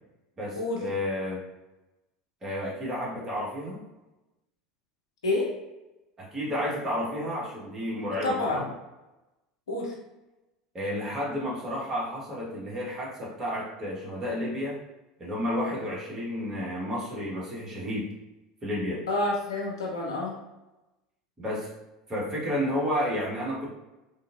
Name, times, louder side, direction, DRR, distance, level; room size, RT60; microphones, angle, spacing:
voice 1, 0.4-1.4 2.4-3.8 6.2-8.6 10.7-14.8 15.2-18.1 18.6-19.0 21.4-21.7 22.1-23.7, left 1 dB, 20° right, -5 dB, 1.3 m, -31 dB
voice 2, 8.2-8.7 9.7-9.9 19.1-20.4, left 2 dB, 70° left, -1 dB, 0.7 m, -28 dB
3.5 x 2.7 x 2.5 m, 1.0 s
figure-of-eight pair, 75°, 3 cm